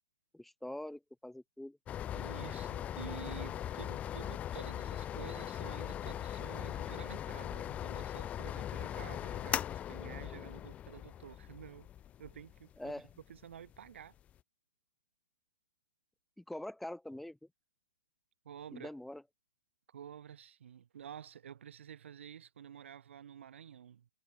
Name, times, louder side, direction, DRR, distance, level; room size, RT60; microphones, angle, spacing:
voice 1, 0.3-1.8 12.8-13.1 16.4-17.4 18.7-19.2, left 1 dB, ahead, 2.5 m, -44 dB
sound 1, 1.9-14.3, left 11 dB, 20° left, 0.7 m, -40 dB
voice 2, 2.1-11.9 12.2-12.9 13.3-14.1 18.4-18.9 19.9-24.1, right 9 dB, 60° right, 2.0 m, -50 dB
figure-of-eight pair, 125°, 7 cm